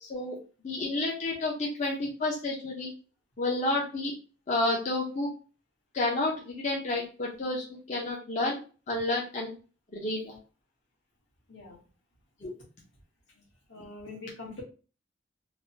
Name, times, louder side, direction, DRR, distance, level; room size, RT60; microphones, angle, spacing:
voice 1, 0.0-0.4 0.6-2.9 3.4-4.1 4.5-5.3 5.9-8.6 8.9-9.5 9.9-10.3 12.4-12.5, left 2 dB, 40° left, -2 dB, 0.6 m, -30 dB
voice 2, 11.5-11.8 13.7-14.6, left 2 dB, 80° left, -2 dB, 1.2 m, -43 dB
3.2 x 2.1 x 2.6 m, 0.35 s
head